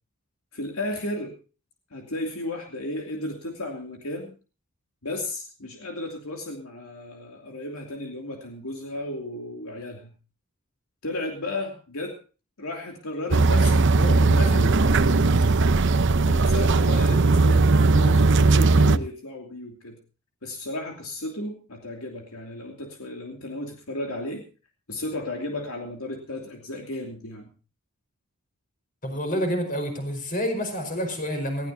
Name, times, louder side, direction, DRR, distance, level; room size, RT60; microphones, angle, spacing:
voice 1, 0.5-1.3 1.9-4.3 5.0-10.1 11.0-12.2 12.6-15.6 16.3-20.0 20.4-24.4 24.9-27.5, left 1 dB, 75° left, 3 dB, 2.8 m, -34 dB
sound 1, 13.3-19.0, right 3 dB, 60° right, 0.7 m, -18 dB
voice 2, 29.0-31.7, equal, 40° left, 5 dB, 5.0 m, -28 dB
20.0 x 16.0 x 2.8 m, 0.34 s
head